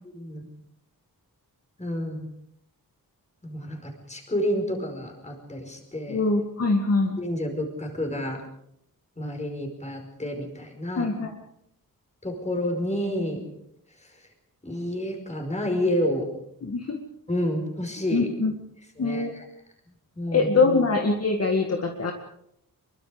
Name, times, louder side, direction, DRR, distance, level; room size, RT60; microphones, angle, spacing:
voice 1, 0.1-0.5 1.8-2.3 3.4-6.2 7.2-8.4 9.2-11.1 12.2-13.4 14.6-16.3 17.3-18.3 19.0-19.4 20.1-20.5, left 1 dB, 20° left, 3 dB, 5.1 m, -29 dB
voice 2, 6.1-7.2 11.0-11.3 16.6-17.0 18.1-18.5 19.0-19.3 20.3-22.1, left 3 dB, 40° left, 3 dB, 2.0 m, -23 dB
26.0 x 23.0 x 5.1 m, 0.76 s
wide cardioid pair, 175°, 36 cm